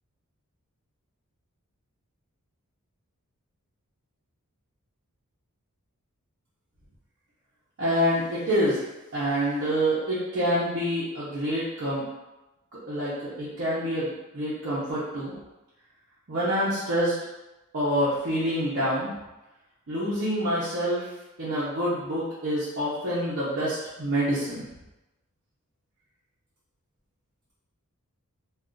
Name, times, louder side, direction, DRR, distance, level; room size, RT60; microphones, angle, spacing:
voice 1, 7.8-8.8 9.1-12.0 12.9-15.3 16.3-17.1 17.7-19.1 19.9-21.0 21.4-24.6, equal, 55° right, -9 dB, 0.7 m, -27 dB
2.4 x 2.3 x 3.7 m, 1.0 s
head